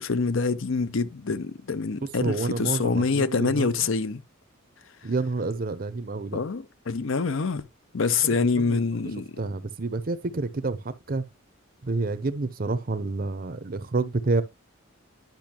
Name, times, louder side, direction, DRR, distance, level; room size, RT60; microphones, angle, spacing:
voice 1, 0.0-4.2 6.3-7.7 7.9-9.4, left 4 dB, 60° left, 0.7 m, -26 dB
voice 2, 2.2-3.7 5.0-6.4 8.2-8.8 9.4-11.2 11.8-14.4, right 3 dB, 45° right, 0.6 m, -28 dB
10.5 x 5.8 x 2.9 m
head